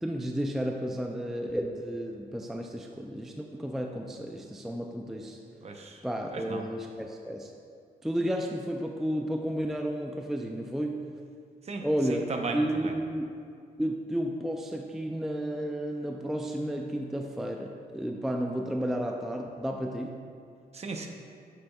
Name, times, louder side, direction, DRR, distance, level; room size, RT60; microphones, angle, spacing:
voice 1, 0.0-5.4 6.0-7.5 8.0-11.0 11.8-13.2 13.8-20.2, equal, ahead, 2 dB, 0.3 m, -32 dB
voice 2, 5.6-6.0 6.3-6.6 11.6-12.9 20.7-21.1, right 3 dB, 40° right, 3 dB, 0.7 m, -36 dB
9.3 x 6.9 x 2.3 m, 2.3 s
wide cardioid pair, 130°, 17 cm